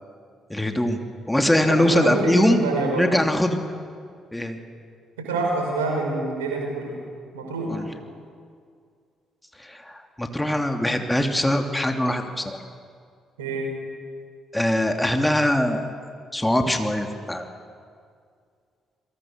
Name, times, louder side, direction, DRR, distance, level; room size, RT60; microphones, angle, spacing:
voice 1, 0.5-1.0 1.3-2.6 2.9-3.6 4.3-4.6 7.7-7.9 9.6-12.6 14.5-15.9 16.3-17.5, left 1 dB, 10° left, 4 dB, 2.7 m, -22 dB
voice 2, 1.7-3.1 5.2-7.0 7.3-7.9 13.4-13.7, right 2 dB, 80° right, 0 dB, 5.9 m, -26 dB
28.0 x 23.0 x 6.7 m, 2.2 s
figure-of-eight pair, 45°, 0 cm